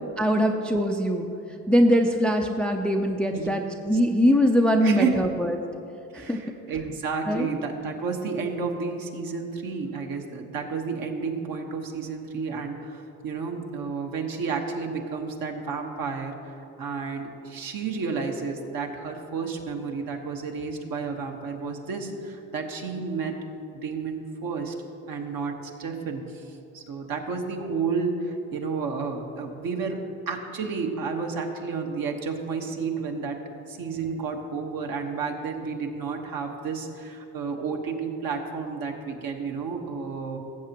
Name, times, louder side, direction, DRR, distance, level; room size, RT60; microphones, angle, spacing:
voice 1, 0.2-1.3 1.7-5.5 6.1-6.4 7.3-7.5, equal, ahead, 4 dB, 0.5 m, -22 dB
voice 2, 4.8-5.2 6.1-16.5 16.8-23.4 23.7-24.7 25.1-33.4 33.7-40.4, right 5 dB, 55° right, 3 dB, 1.4 m, -31 dB
16.0 x 7.3 x 3.0 m, 2.8 s
hypercardioid pair, 70°, 42 cm